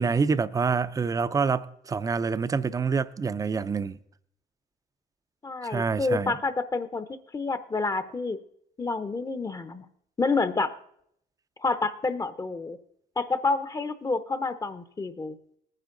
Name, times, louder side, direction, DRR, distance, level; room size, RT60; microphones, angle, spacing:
voice 1, 0.0-4.0 5.6-6.4, right 5 dB, 20° right, 0.5 m, -27 dB
voice 2, 5.4-8.4 8.8-9.8 10.2-10.7 11.6-12.8 13.2-15.4, left 3 dB, 20° left, 0.7 m, -28 dB
19.0 x 9.9 x 3.8 m
cardioid pair, 110°, 17 cm